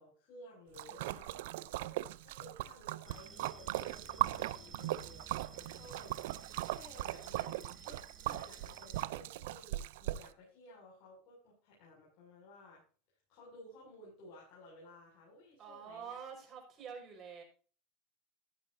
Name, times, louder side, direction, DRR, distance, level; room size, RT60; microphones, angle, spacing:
voice 1, 0.0-1.6 2.2-6.3 6.7-12.8 13.3-16.2, left 1 dB, 55° left, -5 dB, 7.0 m, -56 dB
voice 2, 0.7-1.7 15.6-17.4, right 6 dB, 35° right, 2 dB, 5.9 m, -49 dB
Splash splatter, 0.8-10.3, right 16 dB, 75° right, 0.6 m, -39 dB
sound 1, 3.1-9.0, right 3 dB, 15° right, 0.9 m, -56 dB
15.0 x 10.5 x 2.8 m, 0.38 s
supercardioid pair, 110°, 0 cm